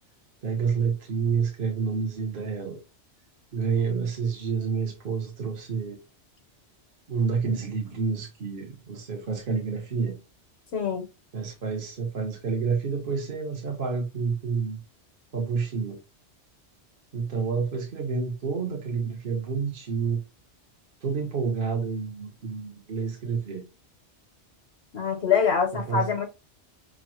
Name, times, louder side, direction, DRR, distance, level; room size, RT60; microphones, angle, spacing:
voice 1, 0.4-2.8 3.5-6.0 7.1-10.2 11.3-14.8 15.3-16.0 17.1-20.2 21.0-23.6 25.7-26.0, right 5 dB, 50° right, 1.0 m, -29 dB
voice 2, 10.7-11.1 24.9-26.3, left 7 dB, 70° left, 1.0 m, -24 dB
6.0 x 2.0 x 3.0 m
omnidirectional pair, 1.2 m